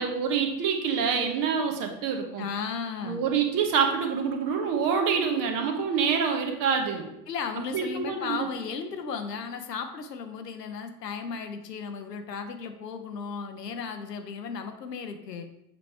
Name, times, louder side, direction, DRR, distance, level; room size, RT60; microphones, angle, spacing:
voice 1, 0.0-2.5 3.0-7.1 7.7-8.5, right 6 dB, 40° right, 4 dB, 1.1 m, -26 dB
voice 2, 2.4-3.2 7.3-15.5, left 6 dB, 80° left, 6 dB, 0.8 m, -35 dB
6.9 x 3.1 x 4.6 m, 0.86 s
figure-of-eight pair, 75°, 49 cm